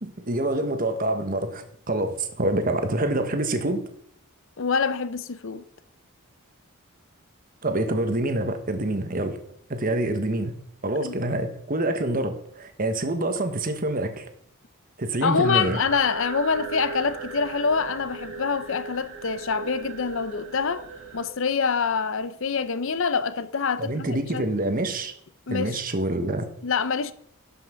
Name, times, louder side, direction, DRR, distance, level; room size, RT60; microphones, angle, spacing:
voice 1, 0.0-3.8 7.6-9.4 9.7-10.5 10.8-14.2 15.0-15.8 23.8-25.1 25.5-26.5, right 1 dB, 40° right, 1.2 m, -26 dB
voice 2, 4.6-5.6 11.0-11.2 15.2-20.9 21.1-24.4 25.5-25.8 26.6-27.1, left 5 dB, 60° left, 0.6 m, -26 dB
sound 1, 15.4-21.3, right 5 dB, 65° right, 2.1 m, -38 dB
12.0 x 5.8 x 5.7 m
head